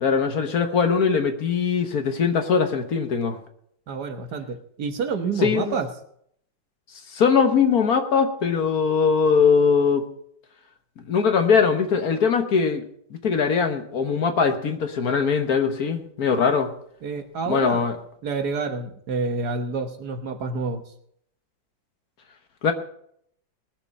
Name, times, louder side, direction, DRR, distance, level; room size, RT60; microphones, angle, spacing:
voice 1, 0.0-3.4 5.4-5.7 7.1-10.1 11.1-12.8 13.2-16.7 17.5-18.0 22.6-22.7, left 6 dB, 55° left, 7 dB, 1.5 m, -21 dB
voice 2, 3.9-5.9 17.0-17.8 18.2-20.8, right 4 dB, 60° right, 7 dB, 1.6 m, -28 dB
20.5 x 7.0 x 5.3 m, 0.69 s
omnidirectional pair, 2.0 m